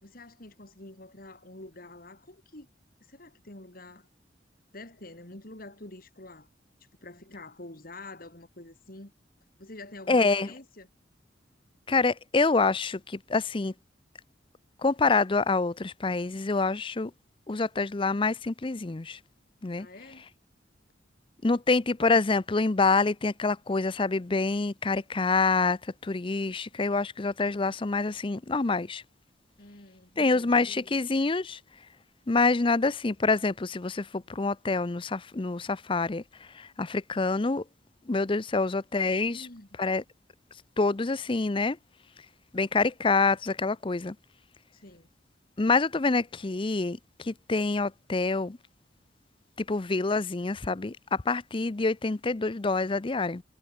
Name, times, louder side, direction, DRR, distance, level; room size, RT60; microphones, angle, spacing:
voice 1, 0.0-2.7 3.1-4.1 4.7-6.5 6.8-9.1 9.6-10.9 19.8-20.2 29.6-30.5 39.3-39.7 44.8-45.1, left 2 dB, 50° left, 3.0 m, -47 dB
voice 2, 10.1-10.5 11.9-13.7 14.8-17.1 17.5-19.2 19.6-19.9 21.4-29.0 30.2-31.6 32.3-36.2 36.5-37.6 38.1-39.5 39.8-40.0 40.8-41.8 42.5-44.2 45.6-48.6 49.7-53.4, left 3 dB, 30° left, 0.6 m, -26 dB
head